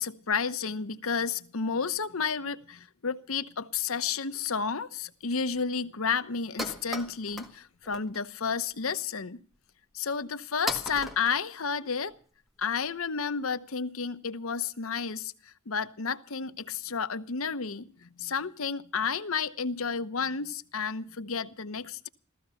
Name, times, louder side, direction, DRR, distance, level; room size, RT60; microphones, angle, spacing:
voice 1, 0.0-9.4 9.9-12.1 12.6-15.3 15.7-22.1, left 5 dB, 85° left, 1.0 m, -31 dB
sound 1, 4.5-4.6 5.2-5.3 5.5-5.7 6.0-6.1 6.3-7.6 7.8-8.2 8.6-8.8 9.5-9.6 10.2-10.3 10.7-12.2, left 1 dB, ahead, 1.7 m, -37 dB
15.0 x 15.0 x 5.7 m
head